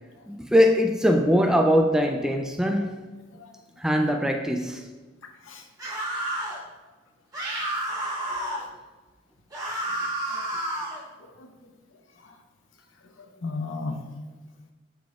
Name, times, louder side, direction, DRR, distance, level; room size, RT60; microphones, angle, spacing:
voice 1, 0.3-2.9 3.8-4.9, equal, 5° right, 4 dB, 0.3 m, -21 dB
sound 1, 5.8-6.6 7.3-8.6 9.5-11.0, right 1 dB, 20° right, 1.6 m, -30 dB
voice 2, 11.2-11.7 12.2-12.4 13.2-14.0, left 3 dB, 80° left, 4 dB, 0.8 m, -36 dB
11.0 x 4.1 x 2.4 m, 1.2 s
head